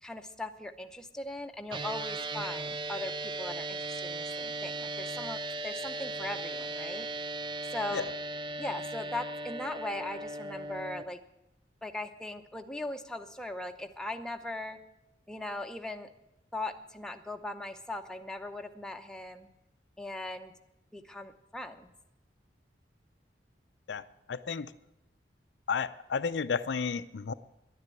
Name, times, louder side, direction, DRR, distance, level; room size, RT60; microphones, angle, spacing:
voice 1, 0.0-7.1 7.7-8.1 8.6-11.2 11.8-14.8 15.3-16.1 16.5-19.5 20.0-20.5 20.9-21.9, left 2 dB, 5° left, 5 dB, 0.7 m, -39 dB
sound 1, 1.7-11.0, right 2 dB, 25° right, 0.4 m, -37 dB
voice 2, 24.3-24.7 25.7-27.3, left 5 dB, 75° left, 12 dB, 0.5 m, -32 dB
11.0 x 9.6 x 8.9 m, 0.91 s
head